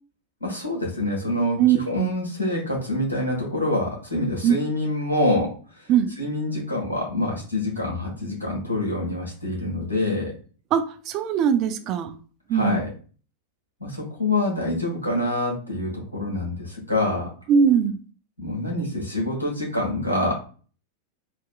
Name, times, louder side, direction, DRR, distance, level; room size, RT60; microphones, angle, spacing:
voice 1, 0.4-5.9 6.2-10.3 12.5-12.9 13.8-17.3 18.4-20.3, left 1 dB, 80° left, -1 dB, 1.4 m, -26 dB
voice 2, 1.6-2.1 4.4-4.5 5.9-6.1 10.7-12.1 12.5-12.8 17.5-18.0, right 8 dB, 40° right, 9 dB, 0.3 m, -21 dB
3.3 x 2.8 x 2.2 m, 0.39 s
figure-of-eight pair, 90°, 0 cm